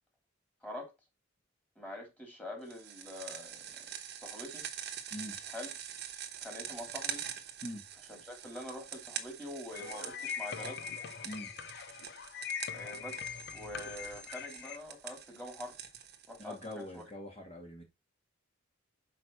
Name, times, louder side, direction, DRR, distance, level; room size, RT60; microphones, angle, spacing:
voice 1, 1.8-3.8 4.2-4.6 5.5-5.7 6.4-7.2 8.1-10.8 12.7-15.8 16.3-17.0, left 1 dB, 10° left, 3.0 m, -45 dB
sound 1, 2.7-17.0, right 9 dB, 55° right, 1.2 m, -45 dB
sound 2, 9.7-14.8, left 7 dB, 55° left, 0.7 m, -42 dB
voice 2, 16.4-17.8, left 1 dB, 30° left, 2.1 m, -43 dB
6.2 x 5.0 x 4.3 m
head